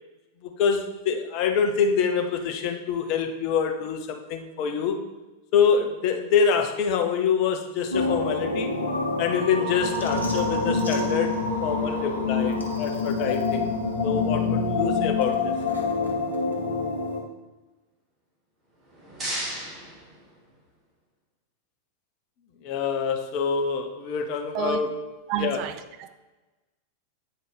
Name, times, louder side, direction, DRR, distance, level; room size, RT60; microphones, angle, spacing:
voice 1, 0.4-5.0 5.5-8.7 9.2-13.7 14.0-15.5 22.6-24.9 25.4-25.6, left 6 dB, 40° left, 5 dB, 0.8 m, -25 dB
sound 1, 7.9-17.2, left 3 dB, 80° left, 0.9 m, -26 dB
sound 2, 18.6-20.9, right 1 dB, 20° right, 1.9 m, -36 dB
voice 2, 25.3-26.1, right 10 dB, 40° right, 9 dB, 0.4 m, -30 dB
9.0 x 4.2 x 3.4 m, 1.1 s
figure-of-eight pair, 90°, 0 cm